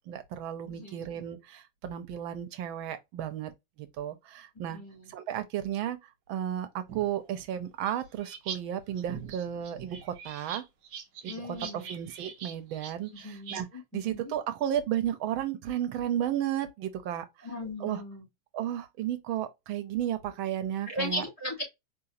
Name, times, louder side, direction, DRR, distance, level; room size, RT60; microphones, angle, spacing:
voice 1, 0.0-3.5 4.0-4.8 5.1-6.0 6.3-10.6 11.2-13.7 13.9-17.3 17.8-18.0 18.5-21.2, right 10 dB, 90° right, 1.6 m, -33 dB
voice 2, 0.7-1.3 4.7-5.1 11.2-12.0 13.1-14.3 17.4-18.2 20.9-21.6, left 1 dB, 15° left, 2.9 m, -38 dB
sound 1, 6.9-8.6 8.9-13.6, right 7 dB, 65° right, 1.3 m, -42 dB
4.8 x 3.6 x 2.6 m
omnidirectional pair, 2.2 m